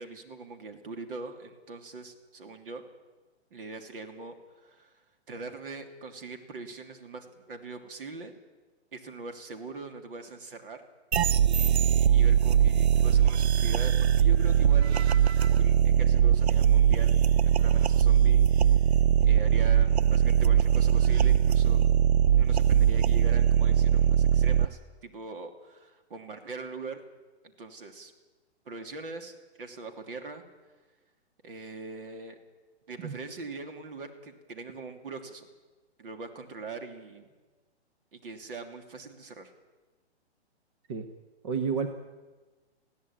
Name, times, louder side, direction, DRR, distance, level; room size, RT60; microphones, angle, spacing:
voice 1, 0.0-2.8 3.5-4.9 5.3-8.3 8.9-10.8 11.6-15.1 15.4-18.8 19.2-21.8 22.4-27.0 27.4-28.1 28.6-30.4 31.4-32.4 32.9-35.5 36.0-37.3 38.1-39.5, right 3 dB, 55° right, 5 dB, 2.9 m, -42 dB
sound 1, 11.1-24.6, right 9 dB, 70° right, 0.7 m, -21 dB
voice 2, 41.4-41.9, right 6 dB, 25° right, 6 dB, 1.0 m, -29 dB
20.5 x 15.5 x 8.8 m, 1.3 s
hypercardioid pair, 170°, 33 cm